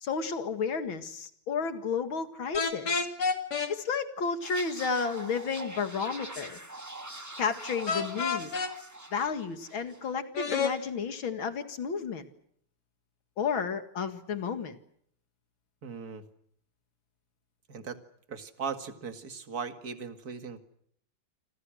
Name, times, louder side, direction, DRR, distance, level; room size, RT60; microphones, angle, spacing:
voice 1, 0.0-3.1 3.7-6.6 7.4-8.5 9.1-12.3 13.4-14.8, left 5 dB, 65° left, 9 dB, 2.7 m, -32 dB
sound 1, 2.5-3.7 7.9-8.7 10.3-10.7, left 5 dB, 50° left, 2.8 m, -29 dB
sound 2, 4.4-10.1 10.4-10.7, right 1 dB, 10° right, 1.7 m, -44 dB
voice 2, 15.8-16.2 17.7-18.0 18.3-20.6, right 5 dB, 45° right, 8 dB, 2.5 m, -38 dB
28.0 x 26.5 x 6.4 m, 0.68 s
omnidirectional pair, 2.3 m